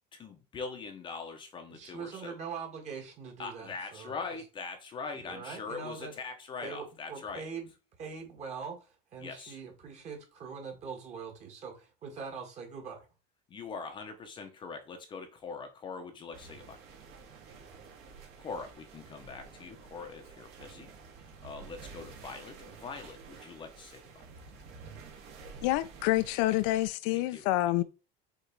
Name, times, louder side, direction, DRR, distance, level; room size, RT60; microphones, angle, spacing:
voice 1, 0.1-2.4 3.4-7.5 9.2-9.6 13.5-16.8 18.4-20.9 21.4-24.3 27.1-27.5, left 4 dB, 25° left, 0.8 m, -42 dB
voice 2, 1.7-4.2 5.1-6.1 6.6-7.7 8.0-13.1, right 5 dB, 30° right, 1.7 m, -42 dB
sound 1, 16.3-26.9, right 5 dB, 60° right, 2.0 m, -50 dB
voice 3, 25.6-27.8, left 16 dB, 75° left, 0.6 m, -27 dB
6.6 x 3.1 x 4.7 m
cardioid pair, 175°, 21 cm